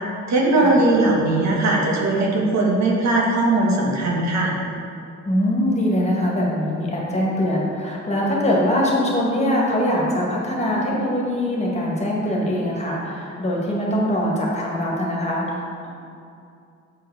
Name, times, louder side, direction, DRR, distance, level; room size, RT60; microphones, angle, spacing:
voice 1, 0.3-4.6, right 2 dB, 65° right, -2 dB, 1.5 m, -19 dB
voice 2, 5.3-15.9, equal, 20° left, -4 dB, 1.9 m, -22 dB
7.5 x 4.7 x 4.9 m, 2.5 s
cardioid pair, 90°, 30 cm